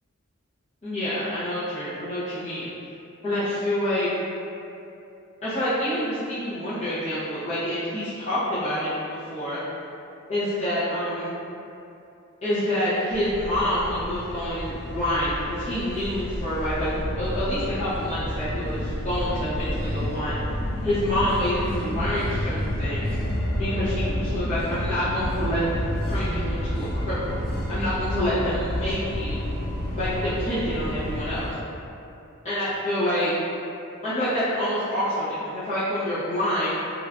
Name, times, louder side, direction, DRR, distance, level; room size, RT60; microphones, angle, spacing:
voice 1, 0.8-2.7 3.2-4.1 5.4-9.6 10.3-11.3 12.4-20.4 20.8-23.1 23.5-27.4 27.7-29.5 30.0-31.5 32.4-33.3 34.0-35.3 35.5-36.7, equal, 30° left, -14 dB, 0.6 m, -27 dB
sound 1, 13.1-31.5, equal, 85° left, 1.0 m, -30 dB
3.0 x 2.2 x 2.4 m, 2.7 s
head